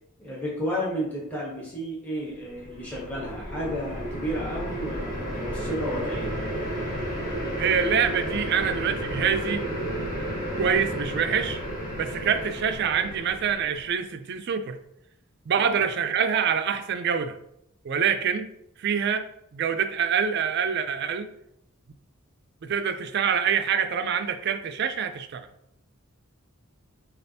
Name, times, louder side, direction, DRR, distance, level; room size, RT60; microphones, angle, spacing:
voice 1, 0.2-6.3 15.6-15.8, equal, 5° left, -6 dB, 1.0 m, -32 dB
sound 1, 2.5-13.9, equal, 40° left, 1.5 m, -32 dB
voice 2, 7.6-9.7 10.6-11.6 12.0-14.8 15.5-17.4 17.8-18.5 18.8-19.3 19.5-21.3 22.6-25.5, right 7 dB, 50° right, 8 dB, 0.4 m, -25 dB
6.6 x 2.4 x 2.7 m, 0.79 s
head